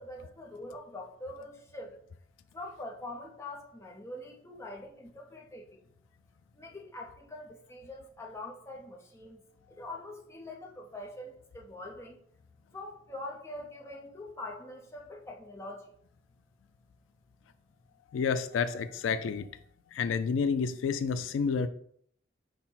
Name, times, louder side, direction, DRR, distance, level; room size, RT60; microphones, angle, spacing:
voice 1, 0.0-2.0 2.5-5.8 6.5-9.4 9.7-12.2 12.7-15.9, left 1 dB, 15° left, 0.6 m, -44 dB
voice 2, 18.1-19.5 19.9-21.7, left 6 dB, 90° left, 0.3 m, -29 dB
5.4 x 2.1 x 4.3 m
head